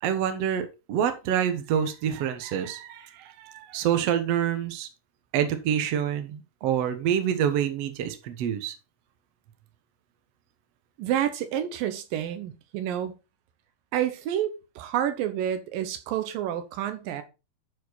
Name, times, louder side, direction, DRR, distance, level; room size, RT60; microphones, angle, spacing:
voice 1, 0.0-4.9 5.3-8.7, right 9 dB, 85° right, 1.4 m, -27 dB
voice 2, 11.0-13.1 13.9-17.2, right 10 dB, 70° right, 2.5 m, -29 dB
11.0 x 5.0 x 4.0 m
omnidirectional pair, 4.6 m